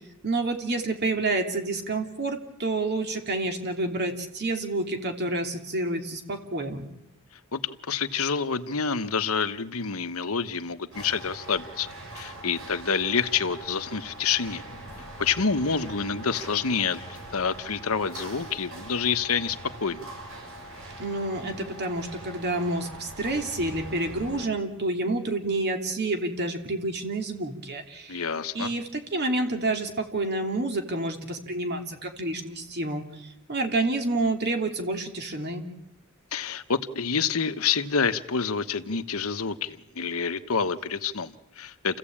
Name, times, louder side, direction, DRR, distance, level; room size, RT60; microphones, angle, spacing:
voice 1, 0.2-6.9 21.0-28.2 28.5-35.6, right 2 dB, 50° right, 2.9 m, -29 dB
voice 2, 7.5-14.6 15.2-20.1 28.1-28.7 36.3-42.0, left 5 dB, 80° left, 1.1 m, -28 dB
sound 1, 10.9-24.5, right 1 dB, 65° right, 5.9 m, -42 dB
28.5 x 16.0 x 8.7 m
head